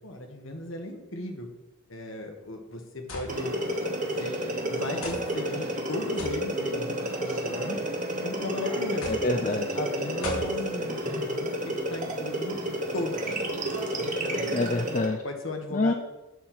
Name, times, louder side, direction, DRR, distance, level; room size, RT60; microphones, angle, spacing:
voice 1, 0.0-1.5 1.9-3.5 4.2-7.8 8.2-9.1 9.7-12.5 12.9-13.7 13.9-14.6 15.2-15.9, left 2 dB, 60° left, 3 dB, 1.5 m, -36 dB
sound 1, 3.1-3.3 4.2-4.3 5.0-5.3 6.2-6.4 7.4-7.8 9.0-9.3 10.2-10.5, left 2 dB, 80° left, 2.6 m, -36 dB
sound 2, 3.3-15.1, right 1 dB, 35° right, 1.1 m, -30 dB
voice 2, 9.1-9.7 14.5-15.2 15.7-15.9, left 2 dB, 35° left, 5 dB, 0.4 m, -26 dB
11.0 x 4.3 x 6.0 m, 0.98 s
head